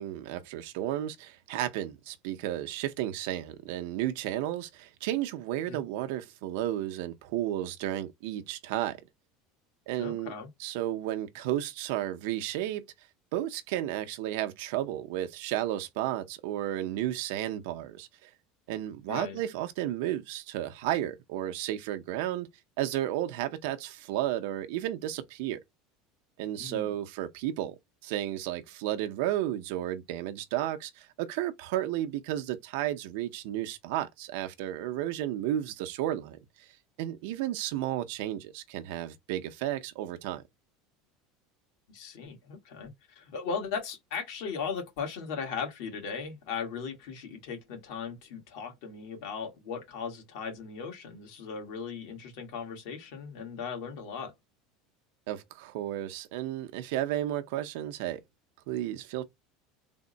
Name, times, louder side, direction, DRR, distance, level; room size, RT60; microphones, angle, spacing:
voice 1, 0.0-9.0 9.9-10.3 10.6-12.8 13.3-18.3 18.7-22.5 22.8-25.6 26.4-36.7 37.0-40.4 55.3-58.2 58.7-59.2, right 13 dB, 75° right, 0.6 m, -33 dB
voice 2, 10.0-10.5 19.1-19.4 26.6-26.9 41.9-54.3, left 6 dB, 70° left, 1.6 m, -37 dB
3.5 x 2.1 x 3.9 m
supercardioid pair, 130°, 0 cm